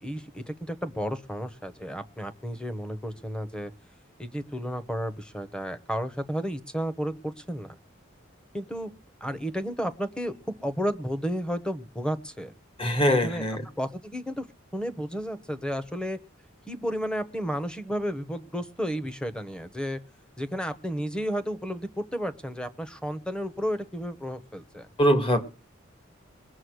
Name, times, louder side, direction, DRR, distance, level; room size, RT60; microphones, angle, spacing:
voice 1, 0.0-3.7 4.2-7.7 8.5-8.9 9.2-12.5 13.1-13.4 13.8-14.4 14.7-16.2 16.7-20.0 20.4-24.9, equal, 5° left, 1.2 m, -32 dB
voice 2, 12.8-13.6 25.0-25.4, equal, 30° left, 2.3 m, -22 dB
21.5 x 7.6 x 6.5 m
head